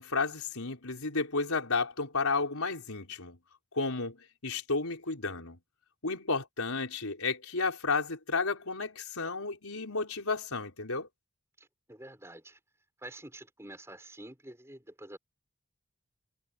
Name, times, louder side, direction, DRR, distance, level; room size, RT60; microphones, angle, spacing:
voice 1, 0.0-3.4 3.7-4.2 4.4-5.6 6.0-11.1, left 4 dB, 85° left, 4.8 m, -32 dB
voice 2, 11.6-12.6 13.0-15.2, right 1 dB, 10° right, 5.1 m, -48 dB
head